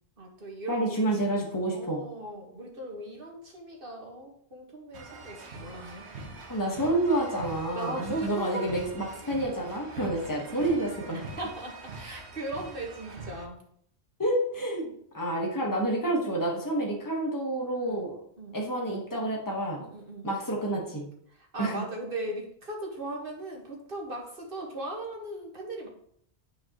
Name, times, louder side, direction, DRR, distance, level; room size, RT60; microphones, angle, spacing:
voice 1, 0.2-1.4 1.7-6.0 7.7-8.7 11.4-13.6 17.8-18.1 18.4-18.6 19.8-20.3 21.3-25.9, right 1 dB, 55° right, 0 dB, 1.8 m, -38 dB
voice 2, 0.7-2.0 6.5-11.2 14.2-18.2 18.5-19.8 20.2-21.1 21.6-21.8, right 1 dB, 20° left, -1 dB, 1.4 m, -29 dB
sound 1, 4.9-13.5, right 2 dB, 85° right, 1.3 m, -44 dB
9.5 x 5.2 x 3.0 m, 0.65 s
omnidirectional pair, 1.1 m